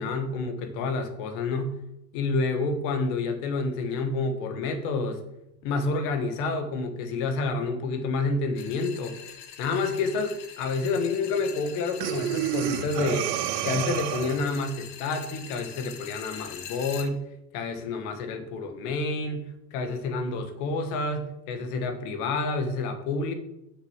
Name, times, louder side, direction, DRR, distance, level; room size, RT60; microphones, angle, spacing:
voice 1, 0.0-1.7 2.1-5.2 5.6-9.2 9.6-13.3 13.6-17.3 17.5-23.3, left 3 dB, 60° left, 7 dB, 1.7 m, -29 dB
sound 1, 8.6-17.1, left 8 dB, 80° left, 1.5 m, -43 dB
Breathing, 12.0-14.6, right 12 dB, 75° right, 0.8 m, -29 dB
6.6 x 6.6 x 7.3 m, 0.84 s
supercardioid pair, 155°, 50 cm